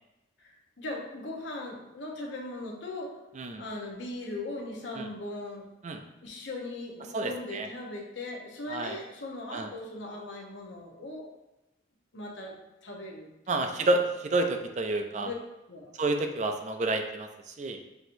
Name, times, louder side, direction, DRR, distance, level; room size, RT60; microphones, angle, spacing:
voice 1, 0.4-3.1 3.6-5.7 6.2-11.3 12.1-12.5 12.8-13.3 13.6-13.8 15.2-15.3 15.7-15.9, left 2 dB, 70° left, -1 dB, 0.8 m, -39 dB
voice 2, 7.1-7.7 8.7-9.0 9.5-9.7 13.5-15.3 16.0-17.8, right 2 dB, 35° right, 5 dB, 0.3 m, -29 dB
5.9 x 2.9 x 2.6 m, 0.99 s
head